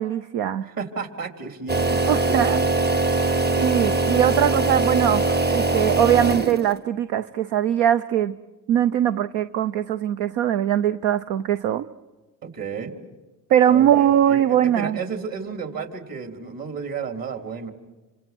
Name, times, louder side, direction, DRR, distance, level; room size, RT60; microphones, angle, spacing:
voice 1, 0.0-0.7 2.1-2.6 3.0-3.1 3.6-5.2 5.5-8.3 8.7-11.8 13.5-15.0, right 10 dB, 80° right, 10 dB, 0.7 m, -21 dB
voice 2, 0.6-3.0 12.4-12.9 13.7-17.7, right 5 dB, 50° right, 5 dB, 3.9 m, -33 dB
sound 1, 1.7-6.8, right 2 dB, 25° right, 0.9 m, -22 dB
28.0 x 26.0 x 6.2 m, 1.2 s
supercardioid pair, 70°, 42 cm